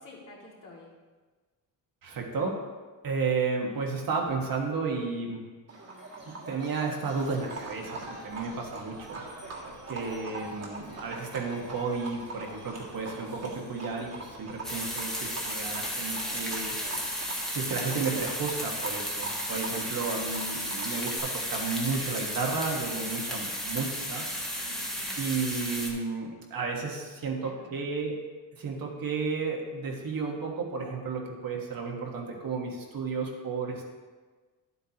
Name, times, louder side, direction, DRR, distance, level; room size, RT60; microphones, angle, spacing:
voice 1, 0.0-0.9 24.6-25.3 27.2-27.8, left 1 dB, 45° left, -4 dB, 2.3 m, -50 dB
voice 2, 2.0-2.6 3.0-5.4 6.2-9.2 9.9-16.7 17.5-24.2 25.2-28.2 28.5-33.9, right 4 dB, 50° right, 0 dB, 1.5 m, -32 dB
Livestock farm animals working animals, 5.7-21.2, right 2 dB, 35° right, 1.8 m, -43 dB
sound 1, 7.1-17.1, right 3 dB, 70° right, 2.1 m, -52 dB
sound 2, 14.6-25.9, equal, ahead, 1.3 m, -34 dB
11.5 x 8.2 x 2.9 m, 1.4 s
cardioid pair, 145°, 43 cm